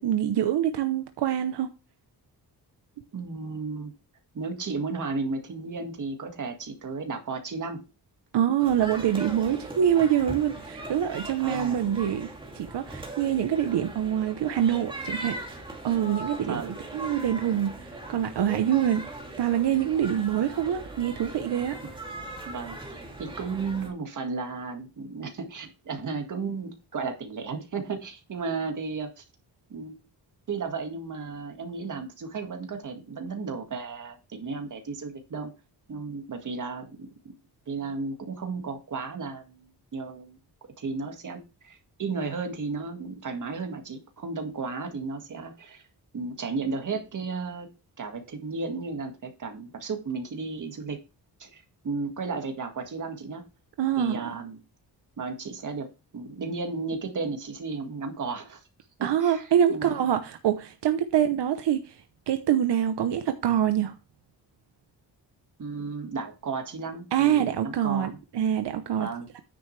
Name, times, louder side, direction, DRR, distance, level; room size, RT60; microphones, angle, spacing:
voice 1, 0.0-1.7 8.3-12.3 12.5-15.4 15.8-19.0 19.4-21.8 53.8-54.4 59.0-62.0 62.3-63.9 67.1-69.1 69.3-69.4, right 10 dB, 85° right, 0.9 m, -25 dB
voice 2, 3.1-3.9 4.3-7.8 11.4-11.8 16.5-16.7 22.4-29.2 29.7-30.0 30.5-35.5 35.9-37.1 37.7-40.4 40.8-45.8 46.1-47.7 48.0-51.0 51.4-53.5 54.0-54.6 55.2-58.6 59.0-60.0 65.6-68.2 69.0-69.3, right 4 dB, 50° right, 1.9 m, -34 dB
sound 1, 8.6-23.9, right 2 dB, 10° right, 2.5 m, -40 dB
9.7 x 7.2 x 3.3 m
wide cardioid pair, 180°, 40 cm